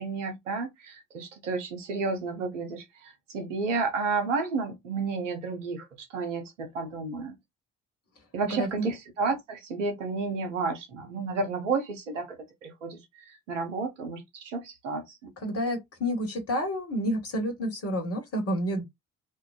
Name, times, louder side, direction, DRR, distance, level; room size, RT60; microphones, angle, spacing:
voice 1, 0.0-5.9 6.1-7.3 8.3-13.0 13.3-15.3, right 4 dB, 80° right, 0.8 m, -31 dB
voice 2, 8.5-8.9 15.4-18.8, equal, 40° left, 1.2 m, -29 dB
2.6 x 2.2 x 2.4 m
figure-of-eight pair, 45°, 36 cm